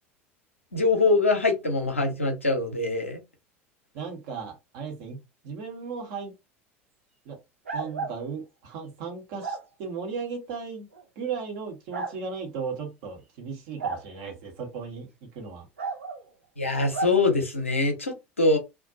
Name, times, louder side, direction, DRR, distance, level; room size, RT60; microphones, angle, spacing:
voice 1, 0.7-3.2 16.6-18.6, left 3 dB, 85° left, 0.6 m, -23 dB
voice 2, 3.9-6.3 7.2-7.4 7.7-10.9 11.2-15.6, right 5 dB, 55° right, 0.9 m, -36 dB
sound 1, 7.7-8.2 9.4-9.6 10.9-11.0 11.9-12.1 13.8-14.1 15.8-16.2 16.9-17.2, right 4 dB, 80° right, 0.5 m, -32 dB
2.4 x 2.2 x 2.6 m
figure-of-eight pair, 70°, 7 cm